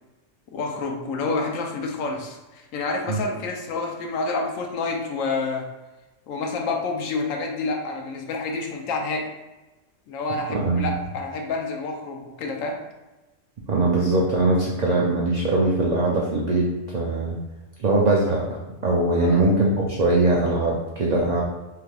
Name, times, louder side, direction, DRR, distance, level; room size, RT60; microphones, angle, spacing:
voice 1, 0.5-5.7 6.3-9.3 10.1-12.8 19.2-19.4, left 3 dB, 80° left, 2 dB, 1.0 m, -28 dB
voice 2, 10.5-10.9 13.7-17.4 17.8-21.4, right 2 dB, 80° right, -4 dB, 0.3 m, -21 dB
3.3 x 3.3 x 2.3 m, 1.1 s
omnidirectional pair, 1.4 m